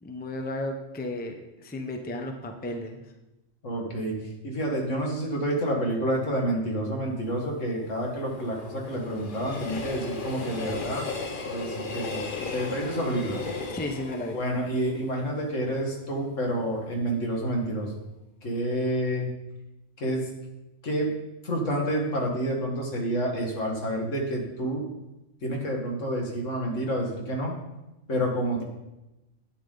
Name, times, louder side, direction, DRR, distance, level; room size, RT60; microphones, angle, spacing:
voice 1, 0.0-3.0 13.7-14.4, left 1 dB, 10° left, 4 dB, 0.6 m, -34 dB
voice 2, 3.6-4.2 4.4-11.1 11.5-12.2 12.5-13.4 14.3-18.0 18.4-19.3 20.0-20.3 20.8-21.1 21.4-24.8 25.4-27.5 28.1-28.6, right 1 dB, 75° left, 0 dB, 2.1 m, -29 dB
Train, 7.2-16.2 16.6-16.7, left 4 dB, 45° left, 1.0 m, -36 dB
8.9 x 8.7 x 3.8 m, 0.98 s
omnidirectional pair, 1.3 m